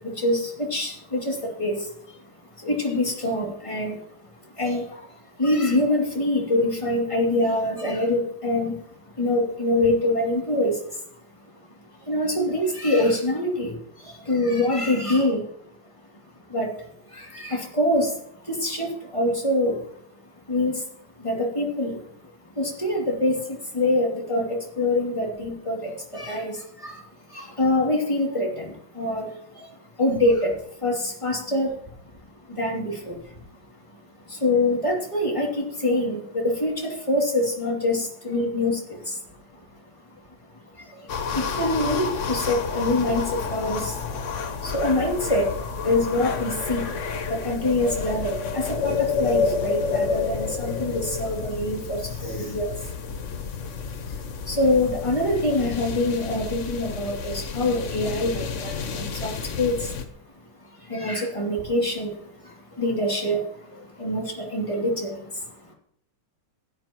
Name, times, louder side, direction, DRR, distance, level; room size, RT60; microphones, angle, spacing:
voice 1, 0.0-4.0 4.4-8.8 9.1-11.1 11.4-11.5 12.0-15.5 16.3-20.0 20.5-20.8 21.2-31.8 32.3-33.4 33.9-39.7 40.5-47.0 47.3-53.2 53.6-53.7 54.0-60.0 60.6-65.7, left 1 dB, 15° left, -1 dB, 2.7 m, -25 dB
sound 1, 41.1-60.0, left 5 dB, 55° left, 0.8 m, -30 dB
16.0 x 11.5 x 3.0 m, 0.70 s
omnidirectional pair, 2.3 m